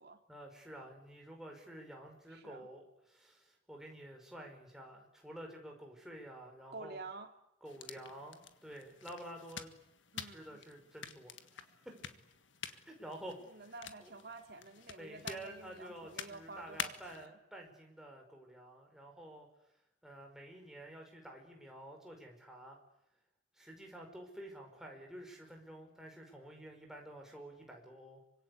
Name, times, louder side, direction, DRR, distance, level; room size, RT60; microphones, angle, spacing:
voice 1, 0.3-7.0 7.6-9.7 10.2-11.8 12.7-13.4 14.0-14.1 14.9-19.5 20.0-22.8 23.5-28.2, right 1 dB, ahead, 1 dB, 5.3 m, -50 dB
voice 2, 2.3-2.7 6.7-7.3 10.1-10.6 13.4-17.3, right 3 dB, 50° right, 2 dB, 2.9 m, -50 dB
sound 1, 7.6-17.3, left 7 dB, 65° left, 1.7 m, -48 dB
26.5 x 25.0 x 8.4 m, 0.83 s
head